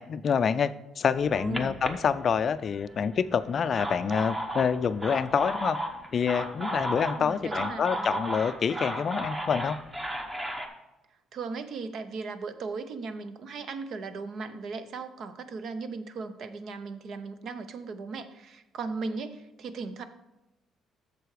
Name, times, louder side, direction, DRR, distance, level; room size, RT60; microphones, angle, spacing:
voice 1, 0.0-5.8 6.1-9.8, left 6 dB, 40° left, 13 dB, 0.4 m, -27 dB
sound 1, 1.1-2.8 3.5-10.7, right 1 dB, 15° right, 1.0 m, -34 dB
voice 2, 1.3-1.7 7.2-8.2 11.3-20.0, right 4 dB, 55° right, 11 dB, 0.7 m, -37 dB
7.9 x 6.8 x 4.9 m, 0.96 s
cardioid pair, 130°, 0 cm